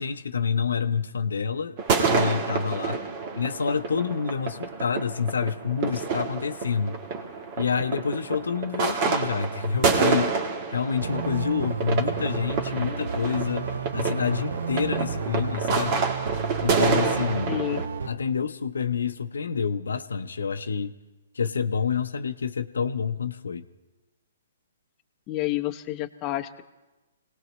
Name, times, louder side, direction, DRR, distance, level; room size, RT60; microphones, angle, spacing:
voice 1, 0.0-1.8 2.0-3.0 3.4-7.0 7.6-10.4 10.7-16.0 16.6-17.6 18.1-20.9 21.3-23.6, left 6 dB, 85° left, 9 dB, 0.6 m, -28 dB
sound 1, 1.8-17.9, right 5 dB, 40° right, 1.5 m, -28 dB
sound 2, 11.0-18.1, right 6 dB, 75° right, 0.8 m, -32 dB
voice 2, 17.5-17.8 25.3-26.6, left 16 dB, 25° left, 7 dB, 0.7 m, -29 dB
25.0 x 18.0 x 3.1 m, 1.1 s
hypercardioid pair, 140°, 0 cm